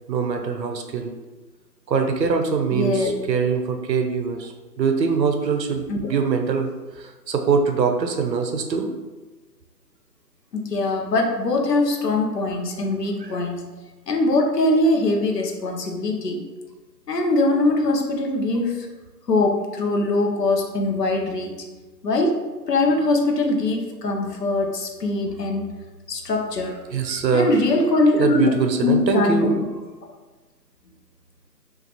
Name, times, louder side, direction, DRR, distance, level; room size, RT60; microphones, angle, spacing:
voice 1, 0.1-1.1 1.9-4.5 4.8-6.7 7.0-8.9 13.2-13.3 26.9-27.5 28.2-29.5, right 5 dB, 90° right, 5 dB, 0.7 m, -23 dB
voice 2, 2.7-3.1 5.9-6.0 10.5-13.7 14.1-16.5 17.1-18.9 19.3-21.6 22.0-22.4 22.7-25.7 26.1-26.8 27.3-28.5 28.8-29.5, left 2 dB, 75° left, 2 dB, 0.7 m, -22 dB
2.9 x 2.4 x 2.7 m, 1.2 s
figure-of-eight pair, 175°, 49 cm